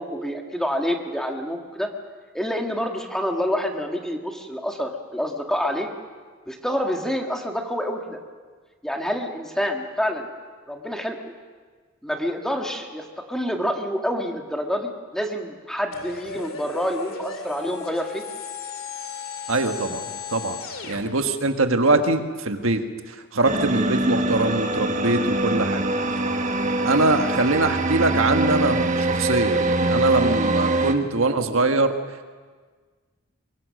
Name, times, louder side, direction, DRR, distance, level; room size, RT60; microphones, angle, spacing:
voice 1, 0.0-1.9 2.3-5.9 6.5-8.2 8.8-10.3 10.7-11.3 12.0-18.2, equal, 5° left, 2 dB, 1.8 m, -27 dB
sound 1, 15.9-21.0, left 6 dB, 90° left, 2.4 m, -36 dB
voice 2, 19.5-20.6 20.9-25.8 26.8-31.9, right 2 dB, 80° right, 6 dB, 1.5 m, -23 dB
sound 2, 23.4-30.9, right 2 dB, 35° right, 1.4 m, -23 dB
23.0 x 23.0 x 6.5 m, 1.5 s
head